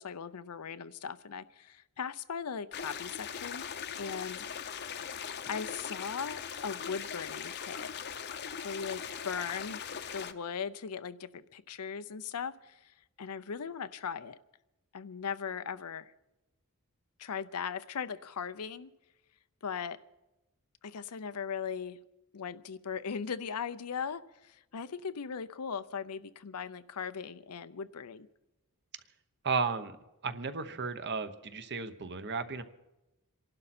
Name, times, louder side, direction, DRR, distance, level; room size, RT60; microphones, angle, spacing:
voice 1, 0.0-3.7 4.0-4.5 5.5-7.9 8.6-9.8 10.1-14.4 14.9-16.1 17.2-18.9 19.6-20.0 20.8-22.0 22.3-28.3, left 6 dB, 90° left, 12 dB, 0.6 m, -39 dB
sound 1, 2.7-10.3, left 7 dB, 50° left, 0.8 m, -40 dB
voice 2, 29.4-29.9 30.2-32.6, right 4 dB, 50° right, 10 dB, 1.0 m, -34 dB
27.5 x 12.0 x 4.3 m, 0.97 s
head